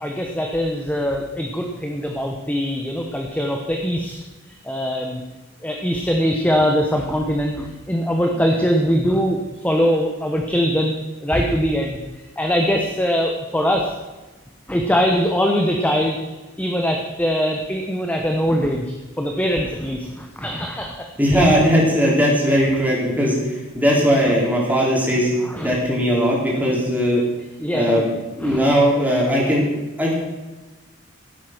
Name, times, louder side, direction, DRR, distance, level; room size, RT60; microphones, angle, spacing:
voice 1, 0.0-4.1 4.5-5.2 5.6-12.0 12.4-13.9 14.7-16.2 16.6-18.9 19.2-21.1 25.4-25.7 27.6-28.0 28.4-28.6, equal, 5° left, 1 dB, 1.2 m, -22 dB
voice 2, 21.2-27.2 27.7-28.1 28.3-30.2, equal, 10° right, -4 dB, 4.2 m, -19 dB
16.0 x 8.5 x 6.2 m, 1.1 s
head